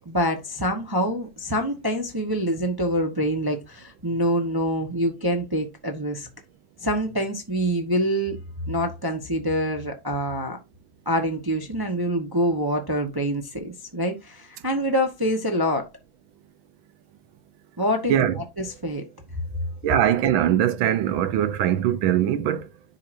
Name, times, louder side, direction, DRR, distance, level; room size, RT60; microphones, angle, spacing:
voice 1, 0.1-6.3 6.8-8.4 8.7-10.6 11.0-15.9 17.8-19.0, equal, 20° right, 0.6 m, -26 dB
voice 2, 19.8-22.6, right 11 dB, 75° right, 1.5 m, -21 dB
10.5 x 4.7 x 2.6 m
omnidirectional pair, 2.2 m